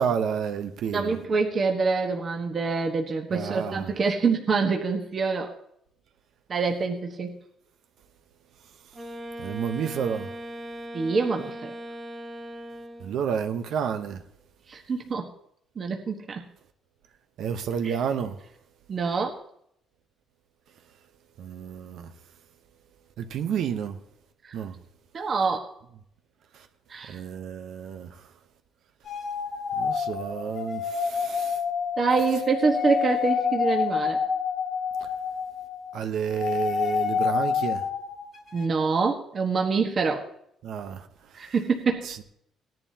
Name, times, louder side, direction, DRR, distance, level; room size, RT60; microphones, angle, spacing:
voice 1, 0.0-1.2 3.3-3.9 9.4-10.3 13.0-14.2 17.4-18.4 21.4-22.1 23.2-24.0 24.5-24.8 26.5-26.7 27.1-28.3 29.7-31.6 35.0-35.1 35.9-37.8 40.6-41.5 42.0-42.2, right 7 dB, 70° right, 1.0 m, -30 dB
voice 2, 0.9-5.5 6.5-7.4 10.9-11.7 14.7-15.3 15.8-16.4 17.8-18.0 18.9-19.4 24.4-24.6 25.1-25.7 26.9-27.2 32.0-34.2 38.5-40.3 41.3-42.1, right 4 dB, 40° right, 1.3 m, -26 dB
Wind instrument woodwind instrument, 8.9-13.3, equal, 20° right, 1.9 m, -39 dB
sound 1, 29.1-36.0 36.3-38.7, left 6 dB, 50° left, 1.6 m, -28 dB
18.0 x 10.5 x 2.9 m
cardioid pair, 120°, 0 cm